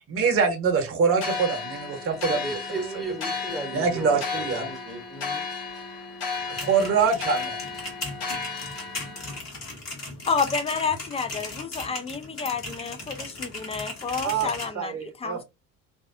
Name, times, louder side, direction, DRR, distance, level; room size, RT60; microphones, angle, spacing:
voice 1, 0.1-2.6 3.7-4.7 6.5-7.6 14.2-14.5 14.7-15.4, right 5 dB, 30° right, 0.9 m, -24 dB
sound 1, 1.2-9.4, left 4 dB, 70° left, 1.0 m, -34 dB
voice 2, 2.2-5.5, right 2 dB, ahead, 0.9 m, -35 dB
sound 2, 6.4-14.7, left 2 dB, 40° left, 1.4 m, -37 dB
voice 3, 10.3-15.4, left 5 dB, 15° left, 0.4 m, -30 dB
2.6 x 2.3 x 2.4 m
figure-of-eight pair, 60°, 42 cm